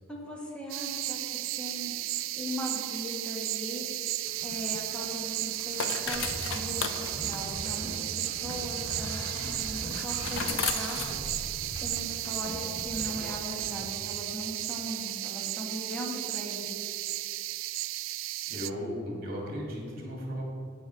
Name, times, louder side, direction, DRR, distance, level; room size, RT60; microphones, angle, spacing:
voice 1, 0.1-1.9 2.4-3.9 4.4-11.0 11.8-16.9, equal, 5° left, -3 dB, 1.5 m, -39 dB
sound 1, 0.7-18.7, right 16 dB, 75° right, 0.3 m, -34 dB
sound 2, 4.3-11.9, left 6 dB, 85° left, 0.7 m, -38 dB
sound 3, 6.0-13.8, equal, 35° left, 1.8 m, -41 dB
voice 2, 18.5-20.5, equal, 50° right, -2 dB, 2.6 m, -36 dB
15.5 x 5.6 x 4.7 m, 2.4 s
head